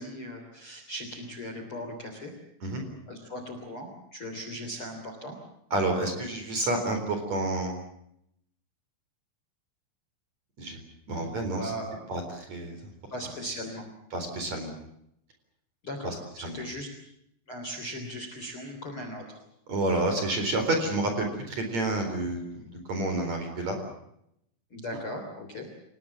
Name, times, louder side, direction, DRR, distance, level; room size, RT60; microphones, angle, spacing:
voice 1, 0.0-2.3 3.1-5.4 11.1-12.0 13.1-13.9 15.8-16.9 17.5-19.4 24.7-25.7, equal, 30° left, 5 dB, 3.3 m, -38 dB
voice 2, 5.7-7.7 10.6-10.8 11.1-11.7 12.1-12.8 14.1-14.8 16.0-16.1 16.4-16.6 19.7-23.8, right 2 dB, 35° right, 5 dB, 4.8 m, -29 dB
28.0 x 19.5 x 7.3 m, 0.77 s
omnidirectional pair, 6.0 m